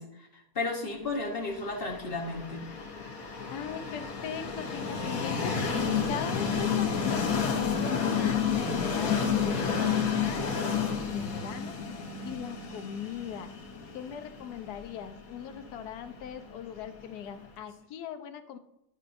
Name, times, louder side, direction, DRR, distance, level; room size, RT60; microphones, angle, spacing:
voice 1, 0.0-2.6, left 3 dB, 40° left, 1 dB, 1.1 m, -34 dB
Train, 1.6-17.4, left 6 dB, 65° left, 1.4 m, -31 dB
voice 2, 3.5-5.5 6.1-11.7 12.2-13.5 13.9-18.6, left 8 dB, 85° left, 8 dB, 1.2 m, -39 dB
11.5 x 5.5 x 2.6 m, 0.84 s
omnidirectional pair, 1.6 m